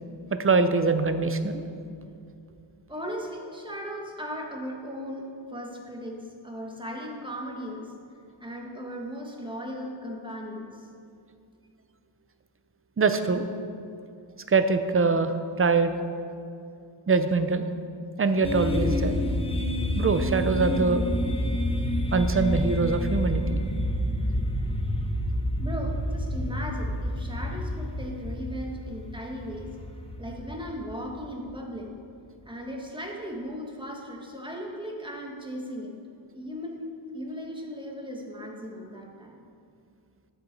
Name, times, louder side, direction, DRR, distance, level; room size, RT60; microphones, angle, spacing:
voice 1, 0.3-1.6 13.0-13.4 14.5-16.0 17.1-17.6 18.2-19.1 20.0-21.1 22.1-23.6, right 4 dB, 30° right, 9 dB, 0.6 m, -23 dB
voice 2, 2.9-7.9 8.4-10.9 25.6-29.8 30.2-31.9 32.4-35.9 36.3-39.4, equal, 10° right, 0 dB, 1.5 m, -37 dB
sound 1, 18.4-31.3, left 1 dB, 10° left, 0.8 m, -29 dB
12.5 x 7.1 x 5.3 m, 2.5 s
wide cardioid pair, 115°, 47 cm